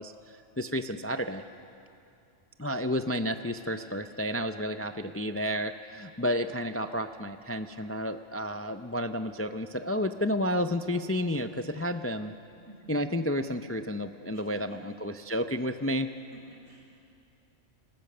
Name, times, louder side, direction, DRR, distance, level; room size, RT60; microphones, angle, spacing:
voice 1, 0.0-1.4 2.6-12.3 12.9-16.1, equal, 25° left, 8 dB, 0.3 m, -31 dB
voice 2, 12.7-13.1 14.3-15.0 15.8-16.0 16.3-16.9, equal, 90° right, -2 dB, 5.4 m, -53 dB
28.5 x 17.5 x 6.7 m, 2.6 s
omnidirectional pair, 1.2 m